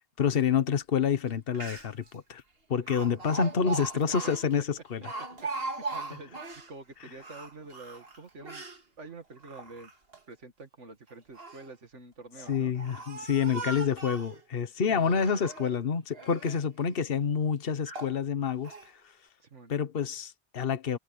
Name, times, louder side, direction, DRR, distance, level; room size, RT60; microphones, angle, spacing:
voice 1, 0.2-2.4 2.7-5.0 12.5-18.7 19.7-21.0, left 7 dB, 55° left, 1.3 m, -28 dB
Speech, 1.3-1.4 1.5-2.1 2.9-6.7 7.2-8.8 9.4-10.2 11.1-11.7 12.4-14.4 14.9-15.8 16.1-16.7 17.2-17.3 17.8-18.2 18.6-18.9, right 3 dB, 55° right, 2.5 m, -39 dB
voice 2, 5.6-6.3 6.7-8.7 9.0-9.9 10.3-12.7 14.9-15.3 19.4-19.7, right 3 dB, 90° right, 2.5 m, -47 dB
omnidirectional pair, 1.2 m